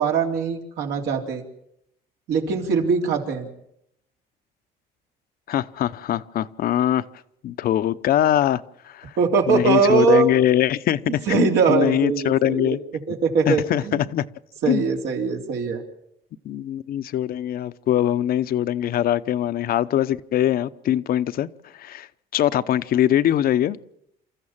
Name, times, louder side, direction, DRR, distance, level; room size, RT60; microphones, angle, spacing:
voice 1, 0.0-1.4 2.3-3.5 9.2-10.3 11.1-12.8 13.1-14.0 14.6-15.8, right 5 dB, 80° right, 2 dB, 3.6 m, -21 dB
voice 2, 5.5-7.0 7.4-9.1 9.5-12.8 13.5-14.2 14.7-14.9 16.4-22.1 22.3-23.8, left 11 dB, 60° left, 12 dB, 0.8 m, -22 dB
28.0 x 14.0 x 7.3 m, 0.78 s
cardioid pair, 110°, 17 cm